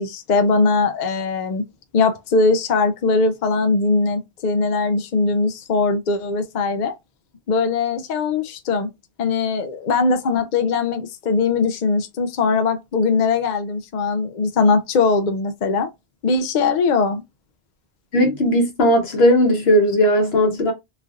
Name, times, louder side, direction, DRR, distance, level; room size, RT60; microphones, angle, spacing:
voice 1, 0.0-1.6 1.9-6.9 7.5-8.9 9.2-15.9 16.2-17.2, left 4 dB, 55° left, 0.6 m, -20 dB
voice 2, 18.1-20.7, equal, 75° left, 1.3 m, -17 dB
3.1 x 2.5 x 2.4 m
omnidirectional pair, 1.0 m